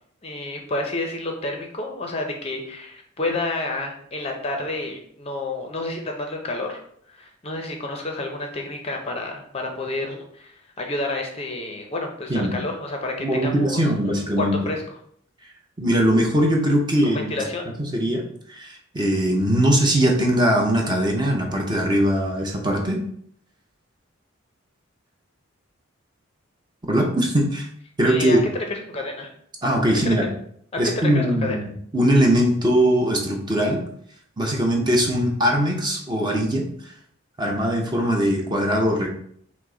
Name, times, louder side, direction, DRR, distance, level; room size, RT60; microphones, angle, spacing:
voice 1, 0.2-14.8 17.0-17.7 28.1-28.4 28.9-29.3 30.0-30.3 30.7-31.6, left 2 dB, 30° left, 2 dB, 0.5 m, -30 dB
voice 2, 13.2-14.6 15.8-17.3 17.8-18.2 18.5-23.0 26.9-27.7 28.0-28.5 29.6-30.3 30.8-33.8 34.4-36.9 37.4-39.1, equal, 20° right, 0 dB, 0.7 m, -21 dB
5.9 x 2.1 x 3.7 m, 0.66 s
head